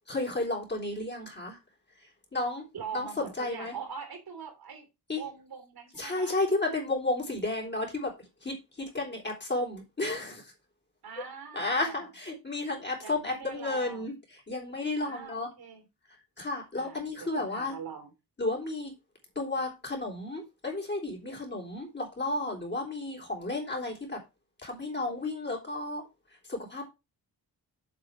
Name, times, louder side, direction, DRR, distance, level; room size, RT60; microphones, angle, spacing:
voice 1, 0.1-1.6 2.0-2.7 2.9-3.8 5.1-5.2 5.9-10.5 11.5-14.1 14.5-15.5 16.4-17.8 18.4-18.9 19.4-24.2 24.6-26.0 26.5-26.8, left 2 dB, 25° left, 3.6 m, -32 dB
voice 2, 2.7-4.9 5.2-6.3 11.0-12.0 13.0-14.1 15.0-15.8 16.8-18.1, right 6 dB, 65° right, 3.3 m, -43 dB
7.7 x 5.0 x 6.1 m
wide cardioid pair, 135°, 39 cm